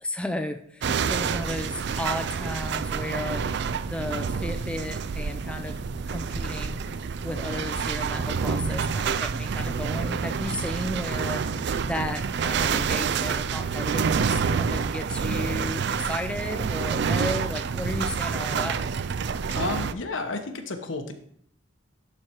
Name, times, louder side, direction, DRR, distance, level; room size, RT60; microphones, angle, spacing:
voice 1, 0.0-5.8 6.1-6.8 7.2-18.9, left 1 dB, 5° left, 6 dB, 0.4 m, -34 dB
sound 1, 0.8-19.9, right 6 dB, 60° right, 0.4 m, -28 dB
sound 2, 2.1-16.4, right 1 dB, 30° right, 1.0 m, -51 dB
voice 2, 19.5-21.1, left 3 dB, 75° left, 6 dB, 1.0 m, -31 dB
11.0 x 4.4 x 4.5 m, 0.65 s
head